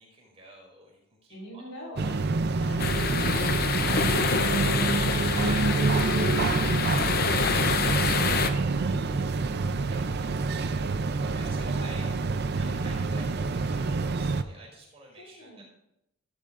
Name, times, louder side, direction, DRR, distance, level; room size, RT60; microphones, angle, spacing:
voice 1, 0.0-1.8 2.6-2.9 5.4-5.6 7.8-8.0 9.9-10.8 11.2-12.1 12.6-15.6, right 2 dB, 30° right, -3 dB, 5.2 m, -49 dB
voice 2, 1.3-7.5 8.0-9.3 11.1-11.8 15.2-15.6, equal, 85° left, -2 dB, 4.1 m, -45 dB
sound 1, 2.0-14.4, right 3 dB, 50° right, 0.5 m, -27 dB
sound 2, 2.8-8.5, left 5 dB, 45° left, 0.7 m, -27 dB
15.5 x 12.5 x 2.6 m, 0.85 s
head